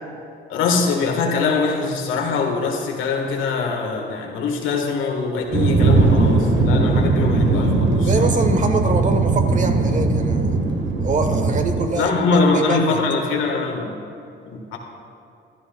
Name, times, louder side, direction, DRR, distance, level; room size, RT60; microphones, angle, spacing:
voice 1, 0.5-8.1 11.9-14.0 14.5-14.8, left 4 dB, 90° left, 1 dB, 1.5 m, -22 dB
sound 1, 5.5-11.8, right 3 dB, 65° right, 1.5 m, -18 dB
voice 2, 8.0-10.6 11.0-13.0, right 3 dB, 40° right, 6 dB, 1.1 m, -24 dB
15.0 x 11.0 x 2.3 m, 2.6 s
cardioid pair, 90°, 20 cm